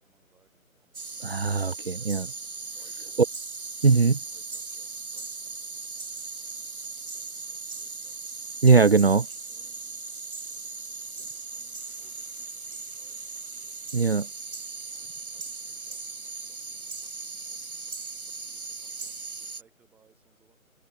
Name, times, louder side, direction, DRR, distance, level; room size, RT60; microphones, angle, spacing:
voice 1, 0.0-1.2 1.9-3.3 3.8-6.7 6.9-8.4 9.5-13.9 14.9-17.7 18.3-20.6, right 6 dB, 5° right, 6.9 m, -68 dB
sound 1, 0.9-19.6, right 4 dB, 85° right, 3.0 m, -38 dB
voice 2, 1.2-2.3 3.8-4.1 8.6-9.3 13.9-14.3, right 4 dB, 45° right, 0.8 m, -20 dB
figure-of-eight pair, 175°, 42 cm